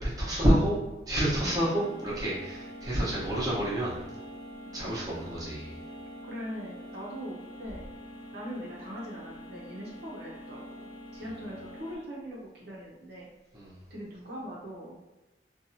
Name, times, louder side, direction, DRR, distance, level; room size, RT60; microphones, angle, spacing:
voice 1, 0.0-0.8 1.1-3.9 4.7-5.8 13.5-13.8, right 1 dB, 20° right, -8 dB, 0.9 m, -28 dB
sound 1, 1.2-12.0, equal, 25° left, 0.8 m, -45 dB
voice 2, 6.2-7.9 8.3-13.3 13.9-15.0, equal, 65° right, -4 dB, 0.7 m, -41 dB
2.6 x 2.3 x 2.7 m, 1.1 s
head